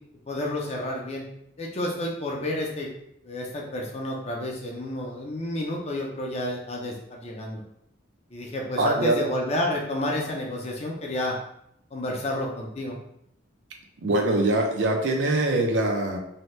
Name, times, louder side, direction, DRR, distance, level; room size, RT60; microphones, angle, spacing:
voice 1, 0.3-1.3 1.6-2.9 3.2-7.6 8.3-11.4 11.9-13.0, left 1 dB, 35° left, -1 dB, 0.5 m, -30 dB
voice 2, 8.8-9.2 14.0-16.2, right 2 dB, 70° right, 2 dB, 0.5 m, -23 dB
2.7 x 2.2 x 3.1 m, 0.73 s
head